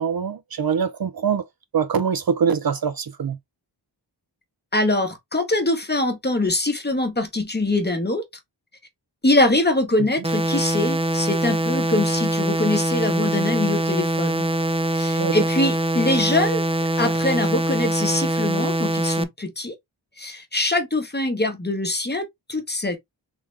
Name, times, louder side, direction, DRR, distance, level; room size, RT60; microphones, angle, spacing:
voice 1, 0.0-1.5 1.7-3.4 15.2-15.3, right 6 dB, 55° right, 0.6 m, -23 dB
voice 2, 4.7-8.2 9.2-14.5 14.9-16.6 17.0-19.7 20.2-23.0, left 2 dB, 25° left, 1.1 m, -23 dB
sound 1, 10.2-19.2, right 1 dB, 15° right, 0.4 m, -23 dB
3.6 x 3.2 x 3.2 m
wide cardioid pair, 110°, 44 cm